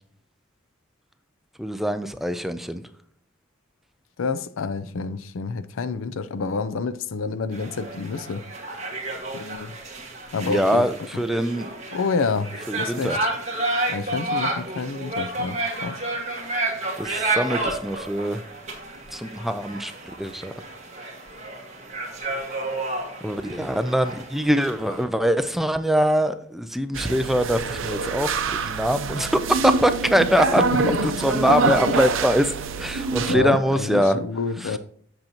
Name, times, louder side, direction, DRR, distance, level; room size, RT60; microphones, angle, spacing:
voice 1, 1.6-2.8 10.5-11.7 12.7-13.2 17.0-18.4 19.1-19.9 20.2-20.5 23.2-34.2 34.6-34.8, equal, ahead, 0.3 m, -23 dB
voice 2, 4.2-8.4 9.3-9.8 10.3-10.8 11.1-11.2 11.9-13.2 13.9-16.0 23.6-23.7 30.7-31.1 31.8-31.9 33.3-34.8, left 4 dB, 80° left, 0.5 m, -28 dB
sound 1, 7.5-25.0, right 2 dB, 35° right, 1.7 m, -31 dB
sound 2, 26.9-33.4, right 4 dB, 75° right, 0.7 m, -25 dB
7.8 x 7.0 x 2.9 m
head